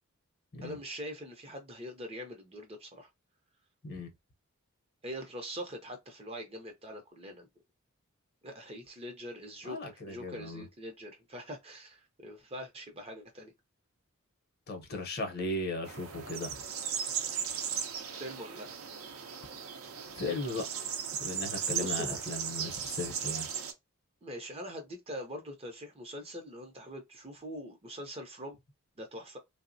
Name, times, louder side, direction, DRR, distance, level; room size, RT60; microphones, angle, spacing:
voice 1, 0.6-3.1 5.0-7.5 8.4-13.5 18.2-18.7 21.5-22.2 24.2-28.6 29.0-29.4, equal, 25° right, 0.5 m, -43 dB
voice 2, 9.6-10.6 14.7-16.5 20.1-20.6 21.2-23.5, left 2 dB, 45° left, 0.7 m, -37 dB
sound 1, 15.8-23.7, right 8 dB, 70° right, 0.5 m, -37 dB
3.2 x 2.0 x 2.5 m
head